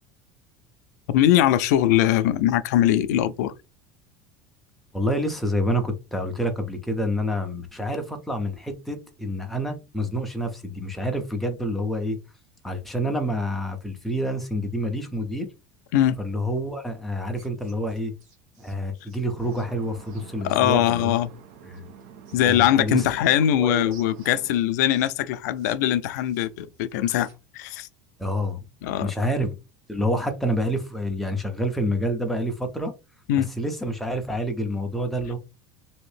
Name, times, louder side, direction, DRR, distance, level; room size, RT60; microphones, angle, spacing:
voice 1, 1.1-3.5 15.9-16.2 20.4-21.3 22.3-27.9 28.8-29.1 33.3-33.5, left 12 dB, 80° left, 0.4 m, -21 dB
voice 2, 4.9-12.2 12.6-15.5 16.2-18.1 18.6-21.2 21.7-21.9 22.4-23.0 23.5-23.9 28.2-28.6 29.0-29.5 29.9-32.9 33.6-35.4, equal, ahead, 0.5 m, -28 dB
sound 1, 17.3-20.3 21.7-23.6 23.9-25.8 26.0-27.6, right 4 dB, 40° right, 1.2 m, -55 dB
sound 2, 19.4-24.6, right 7 dB, 60° right, 0.6 m, -47 dB
2.9 x 2.6 x 3.3 m
cardioid pair, 180°, 9 cm